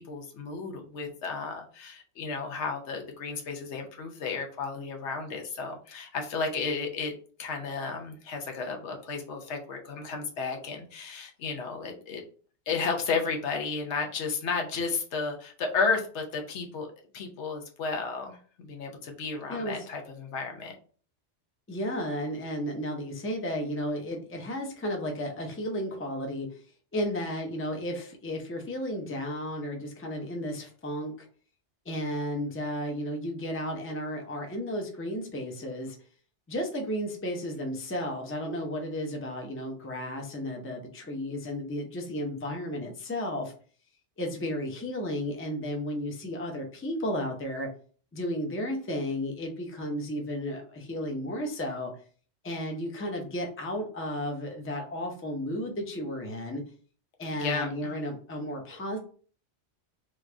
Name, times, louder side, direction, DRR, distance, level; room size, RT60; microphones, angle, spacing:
voice 1, 0.0-7.1 7.4-12.2 12.7-16.9 17.1-18.4 18.6-20.7 57.3-58.0, left 4 dB, 75° left, 3 dB, 1.0 m, -33 dB
voice 2, 19.5-19.9 21.7-26.6 26.9-31.3 31.9-36.0 36.5-43.5 44.2-47.7 48.1-51.9 52.4-56.6 57.2-59.0, equal, 15° left, 2 dB, 0.5 m, -33 dB
3.1 x 2.5 x 3.3 m, 0.42 s
omnidirectional pair, 1.2 m